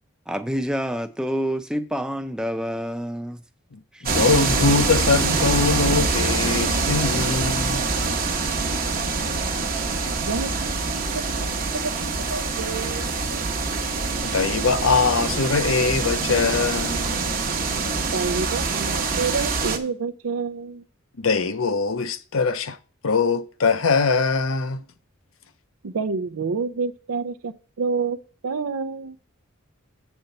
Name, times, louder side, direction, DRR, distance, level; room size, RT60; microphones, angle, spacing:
voice 1, 0.3-3.4 3.9-4.1, equal, 5° right, 0.5 m, -27 dB
voice 2, 3.7-7.8 14.2-17.2 21.2-22.8 23.0-24.8, left 4 dB, 70° left, 0.7 m, -22 dB
sound 1, 4.1-19.8, right 4 dB, 40° right, 1.0 m, -25 dB
voice 3, 10.3-11.5 11.7-11.9 12.3-13.5 18.0-20.8 25.8-28.2 28.4-29.2, right 4 dB, 85° right, 0.6 m, -29 dB
8.1 x 4.5 x 6.6 m
head